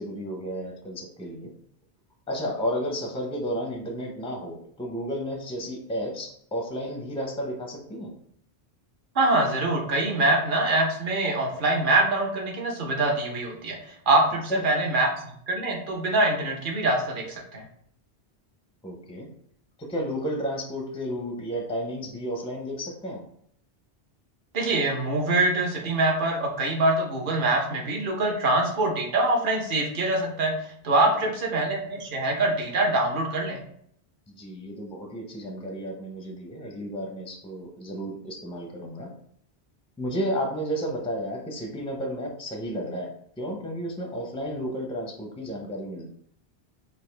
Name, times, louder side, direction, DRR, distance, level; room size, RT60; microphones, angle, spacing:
voice 1, 0.0-1.5 2.3-8.1 14.5-14.7 18.8-19.3 19.8-23.2 31.0-31.3 34.3-39.1 40.0-46.1, equal, 5° left, 1 dB, 0.5 m, -32 dB
voice 2, 9.1-15.1 15.5-17.6 24.5-30.5 30.8-33.6, right 2 dB, 55° right, 0 dB, 1.0 m, -24 dB
4.0 x 2.5 x 3.3 m, 0.67 s
omnidirectional pair, 1.1 m